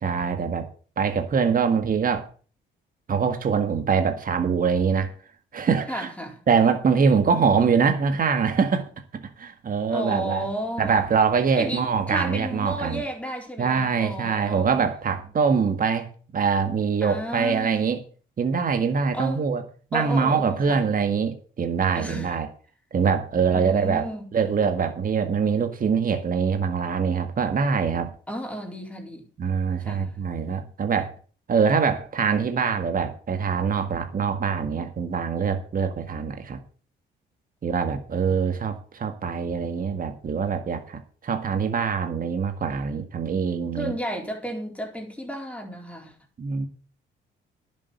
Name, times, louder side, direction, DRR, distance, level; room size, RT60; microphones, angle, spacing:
voice 1, 0.0-0.7 1.0-2.3 3.1-5.1 5.5-6.1 6.5-10.4 10.8-13.0 13.6-18.0 18.4-19.6 19.9-22.5 22.9-28.1 29.4-31.1 31.5-36.6 37.6-43.9 46.4-46.7, right 6 dB, 45° right, 1.8 m, -24 dB
voice 2, 5.9-6.4 9.9-11.0 11.5-14.7 17.0-17.8 19.1-19.5 19.9-20.8 22.0-22.4 23.5-24.3 28.3-29.3 29.8-30.2 43.7-46.1, equal, 5° left, 4.3 m, -33 dB
11.0 x 7.4 x 7.2 m
cardioid pair, 90°, 20 cm